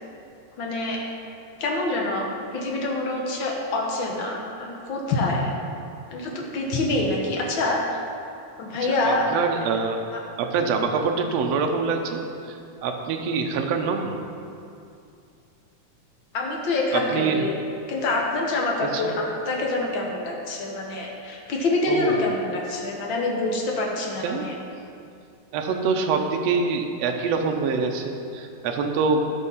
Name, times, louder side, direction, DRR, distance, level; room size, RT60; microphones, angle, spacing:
voice 1, 0.6-1.0 1.6-5.5 6.1-7.8 8.6-9.2 16.3-17.5 17.9-24.5, left 2 dB, 70° left, -1 dB, 1.1 m, -26 dB
voice 2, 8.8-10.1 10.4-14.2 16.9-17.4 18.8-19.1 21.9-22.2 24.2-24.5 25.5-29.2, right 5 dB, 75° right, 3 dB, 1.5 m, -25 dB
14.0 x 5.5 x 5.6 m, 2.5 s
omnidirectional pair, 3.9 m